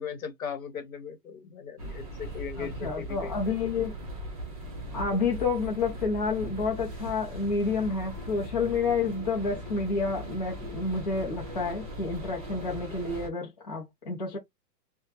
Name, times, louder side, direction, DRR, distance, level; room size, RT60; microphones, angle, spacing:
voice 1, 0.0-3.4, left 6 dB, 55° left, 1.0 m, -38 dB
sound 1, 1.8-13.3, equal, 25° right, 0.5 m, -39 dB
voice 2, 2.6-3.9 4.9-14.4, left 4 dB, 25° left, 0.4 m, -29 dB
2.8 x 2.1 x 2.8 m
hypercardioid pair, 165°, 49 cm